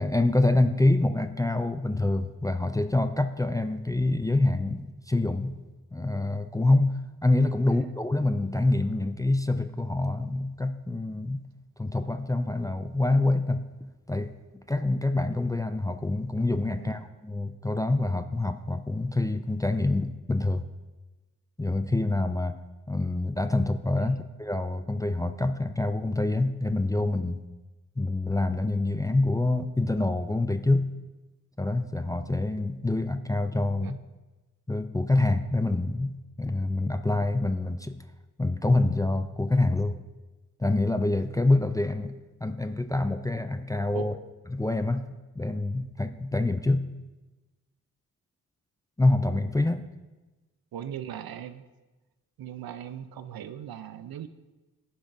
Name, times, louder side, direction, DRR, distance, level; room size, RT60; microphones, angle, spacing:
voice 1, 0.0-5.5 5.9-11.4 11.8-14.3 14.7-20.6 21.6-22.6 22.9-27.4 28.0-30.9 31.6-34.0 34.7-36.1 36.4-38.0 38.4-40.0 40.6-44.1 44.5-45.0 45.4-46.8 49.0-49.8, left 2 dB, 10° left, 9 dB, 0.3 m, -26 dB
voice 2, 50.7-51.6 52.4-54.3, right 9 dB, 75° right, 12 dB, 0.5 m, -39 dB
10.0 x 6.1 x 2.6 m, 1.1 s
cardioid pair, 45°, 37 cm